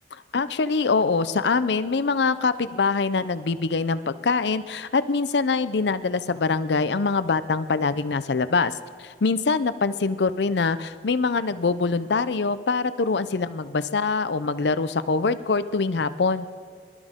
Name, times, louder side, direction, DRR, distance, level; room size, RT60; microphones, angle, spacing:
voice 1, 0.3-8.7 9.0-16.5, left 4 dB, 75° left, 13 dB, 0.6 m, -24 dB
24.0 x 12.5 x 3.7 m, 2.1 s
head